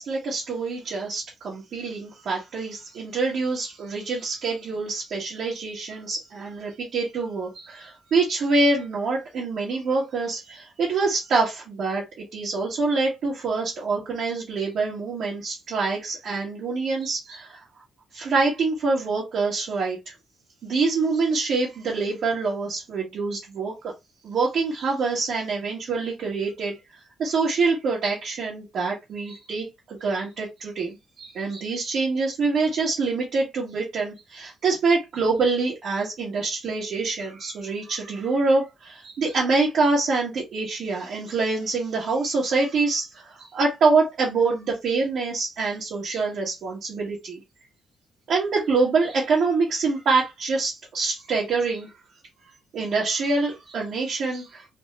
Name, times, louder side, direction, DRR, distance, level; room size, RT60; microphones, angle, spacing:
voice 1, 0.0-17.6 18.1-20.1 20.6-23.7 24.2-26.8 27.2-47.4 48.3-51.9 52.7-54.7, right 3 dB, 65° right, 1.3 m, -25 dB
3.5 x 2.4 x 3.2 m
cardioid pair, 90°, 0 cm